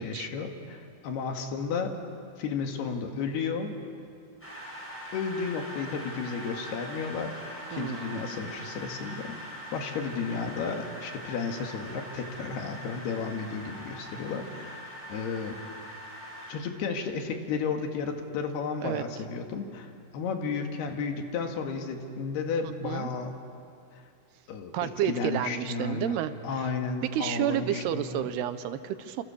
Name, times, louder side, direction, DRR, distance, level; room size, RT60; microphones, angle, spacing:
voice 1, 0.0-1.9 2.4-3.8 5.1-7.4 7.7-15.6 16.5-23.3 24.5-26.2 26.4-28.3, left 5 dB, 70° left, 4 dB, 3.8 m, -33 dB
sound 1, 4.4-16.5, equal, 5° left, 7.7 m, -42 dB
voice 2, 7.7-8.2 18.8-19.0 22.6-23.1 24.7-26.7 27.1-29.2, right 11 dB, 80° right, 11 dB, 2.8 m, -31 dB
28.5 x 27.5 x 7.0 m, 2.4 s
omnidirectional pair, 4.8 m